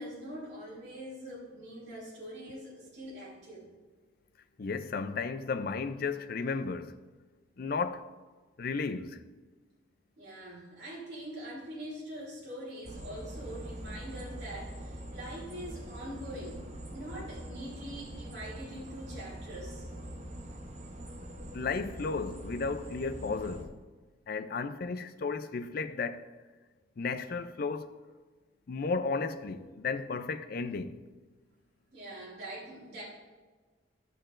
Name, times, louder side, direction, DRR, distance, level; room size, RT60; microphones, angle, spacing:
voice 1, 0.0-3.7 10.2-16.6 16.9-19.9 31.9-33.0, right 1 dB, 60° right, 2.8 m, -43 dB
voice 2, 4.6-7.0 7.6-8.0 8.6-9.2 21.5-23.7 24.3-26.3 27.0-27.9 28.7-31.0, left 4 dB, 50° left, 0.4 m, -34 dB
sound 1, 12.8-23.6, right 1 dB, 35° right, 0.8 m, -43 dB
13.5 x 6.7 x 2.5 m
head